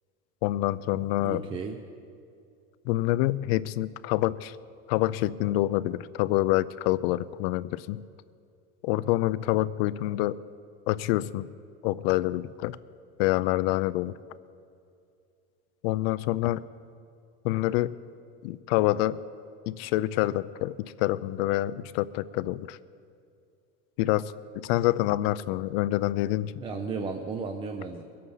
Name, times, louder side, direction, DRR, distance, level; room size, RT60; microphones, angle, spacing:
voice 1, 0.4-1.4 2.9-4.6 4.9-8.0 8.8-10.4 10.9-11.5 11.8-12.8 13.2-14.1 15.8-16.6 17.4-17.9 18.4-19.2 19.7-20.7 21.0-22.8 24.0-24.3 24.6-26.5, left 16 dB, 80° left, 17 dB, 0.5 m, -26 dB
voice 2, 1.2-1.8 26.6-28.0, right 4 dB, 15° right, 5 dB, 0.4 m, -34 dB
22.0 x 8.6 x 5.6 m, 2.4 s
cardioid pair, 170°, 30 cm